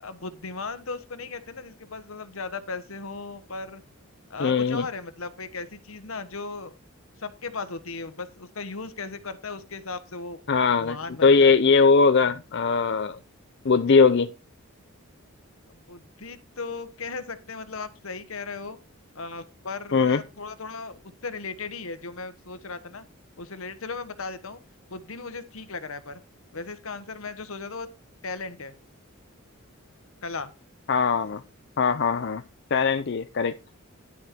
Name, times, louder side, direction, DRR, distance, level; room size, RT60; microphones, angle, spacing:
voice 1, 0.0-3.8 4.3-6.8 7.2-10.4 10.8-11.5 15.7-18.8 19.1-23.0 23.4-24.6 24.9-26.2 26.5-27.9 28.2-28.7 30.2-30.5, left 4 dB, 75° left, 1.2 m, -37 dB
voice 2, 4.4-4.9 10.5-11.0 11.2-13.2 13.6-14.3 19.9-20.2 30.9-31.4 31.8-32.4 32.7-33.5, left 5 dB, 55° left, 0.5 m, -20 dB
11.0 x 6.4 x 4.3 m
head